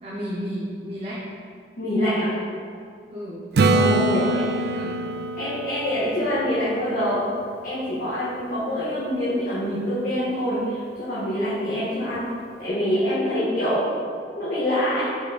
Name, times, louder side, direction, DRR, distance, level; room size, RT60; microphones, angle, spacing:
voice 1, 0.0-1.3 3.1-3.5 4.1-5.0, equal, 35° right, -6 dB, 0.8 m, -33 dB
voice 2, 1.8-2.3 3.7-4.2 5.4-7.2 7.6-12.2 12.6-13.8 14.3-15.1, equal, 50° left, -11 dB, 1.7 m, -25 dB
Acoustic guitar / Strum, 3.6-7.3 12.2-12.3, right 2 dB, 60° right, 0.4 m, -24 dB
6.0 x 5.1 x 4.3 m, 2.3 s
head